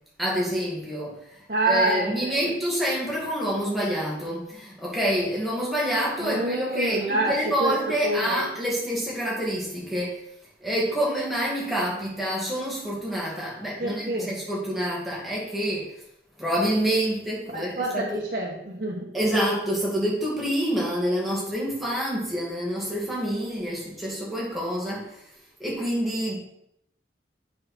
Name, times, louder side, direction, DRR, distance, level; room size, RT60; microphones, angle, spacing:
voice 1, 0.2-1.4 1.7-10.2 10.6-15.9 16.4-18.2 19.1-25.2 25.6-26.4, equal, ahead, -6 dB, 2.4 m, -27 dB
voice 2, 1.5-2.5 6.2-8.4 13.8-14.4 17.5-19.1, right 1 dB, 50° right, -5 dB, 1.2 m, -27 dB
7.6 x 5.8 x 4.4 m, 0.77 s
head